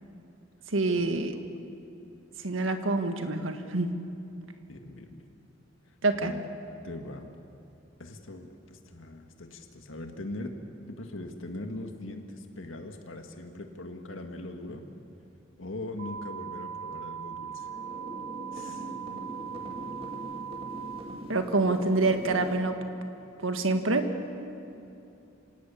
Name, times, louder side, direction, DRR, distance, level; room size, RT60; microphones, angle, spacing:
voice 1, 0.7-1.4 2.4-3.9 6.0-6.3 21.3-22.8 23.4-24.1, right 2 dB, 85° right, 7 dB, 1.7 m, -26 dB
voice 2, 4.7-5.3 6.2-6.4 6.8-7.4 8.0-10.6 10.9-14.8 15.6-17.7 18.5-19.0, left 2 dB, 75° left, 4 dB, 1.9 m, -41 dB
sound 1, 16.0-21.0, right 8 dB, 50° right, 2.5 m, -39 dB
sound 2, 17.5-22.6, right 1 dB, 30° right, 2.1 m, -41 dB
26.5 x 18.0 x 8.6 m, 2.7 s
head